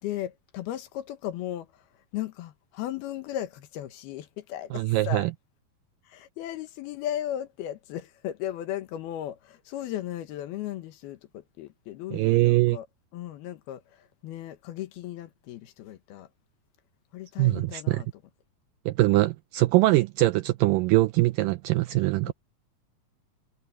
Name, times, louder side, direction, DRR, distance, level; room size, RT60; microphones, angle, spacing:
voice 1, 0.0-1.8 2.1-5.3 6.0-12.9 13.1-16.3 17.1-18.1 22.3-22.4, left 12 dB, 80° left, 3.2 m, -36 dB
voice 2, 4.7-5.3 12.1-12.8 17.4-18.0 18.9-22.3, right 18 dB, 85° right, 1.9 m, -22 dB
omnidirectional pair, 4.4 m